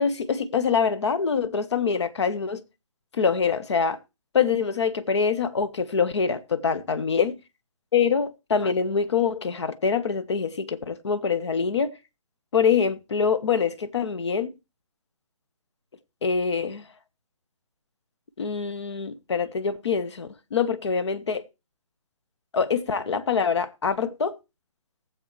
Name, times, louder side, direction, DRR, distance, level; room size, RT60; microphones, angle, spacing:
voice 1, 0.0-2.6 3.1-4.0 4.3-7.3 7.9-11.9 12.5-14.5 16.2-16.9 18.4-21.4 22.5-24.4, left 6 dB, 50° left, 1.1 m, -25 dB
19.5 x 7.5 x 3.2 m
figure-of-eight pair, 145°, 18 cm